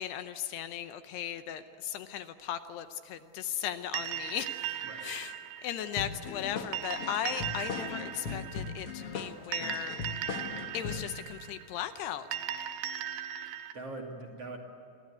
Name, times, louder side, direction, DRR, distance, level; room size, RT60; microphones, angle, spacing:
voice 1, 0.0-4.5 5.0-5.3 5.6-10.0 10.7-12.3, left 10 dB, 75° left, 10 dB, 2.7 m, -37 dB
sound 1, 3.9-13.7, right 9 dB, 85° right, 3.3 m, -39 dB
sound 2, 6.0-11.1, left 5 dB, 55° left, 1.6 m, -39 dB
voice 2, 13.4-14.6, right 2 dB, 40° right, 1 dB, 2.9 m, -43 dB
28.0 x 23.0 x 8.5 m, 2.5 s
omnidirectional pair, 5.1 m